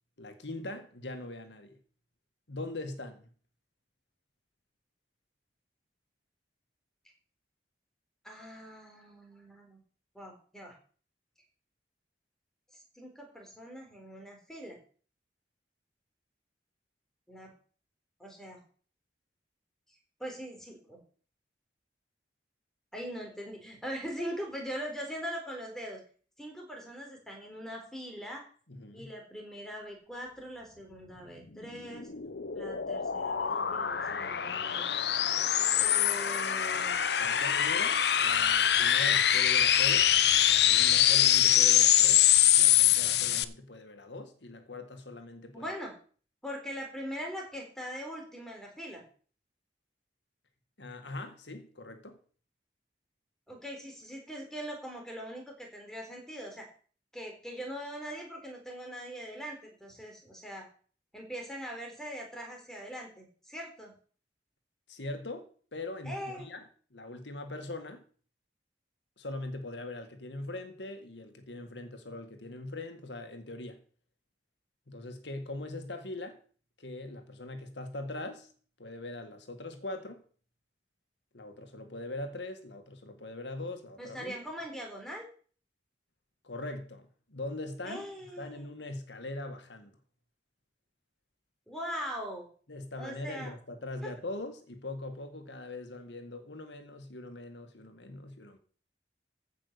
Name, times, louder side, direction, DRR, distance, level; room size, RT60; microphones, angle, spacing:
voice 1, 0.2-1.8 2.5-3.3 28.7-29.1 37.2-40.2 40.4-45.7 50.8-52.2 64.9-66.7 66.9-68.0 69.2-73.8 74.9-76.4 76.8-78.5 78.8-80.2 81.3-84.4 86.4-88.0 88.4-89.9 92.7-98.6, left 2 dB, 85° left, 1.8 m, -41 dB
voice 2, 8.2-9.8 10.1-10.8 12.7-14.8 17.3-17.5 18.2-18.6 20.2-21.0 22.9-26.0 26.4-28.4 28.9-32.1 32.5-34.9 35.8-37.0 45.5-45.9 46.4-49.0 53.5-56.6 57.1-60.7 61.1-63.9 66.0-66.5 84.0-85.3 87.8-88.7 91.7-92.5 93.0-93.5 94.0-94.1, equal, 5° left, 4.0 m, -41 dB
sound 1, 31.6-43.4, left 11 dB, 70° left, 0.7 m, -24 dB
15.0 x 5.9 x 6.7 m
head